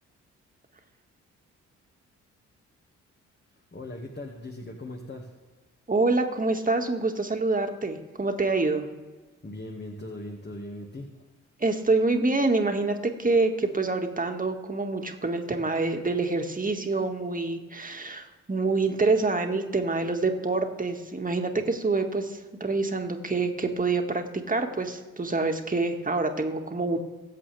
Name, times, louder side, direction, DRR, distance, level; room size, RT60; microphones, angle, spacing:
voice 1, 3.5-5.3 9.4-11.3, left 1 dB, 30° left, 2 dB, 2.0 m, -39 dB
voice 2, 5.9-8.9 11.6-27.0, right 3 dB, 25° right, 5 dB, 2.0 m, -26 dB
22.5 x 7.6 x 3.5 m, 1.3 s
hypercardioid pair, 40°, 35 cm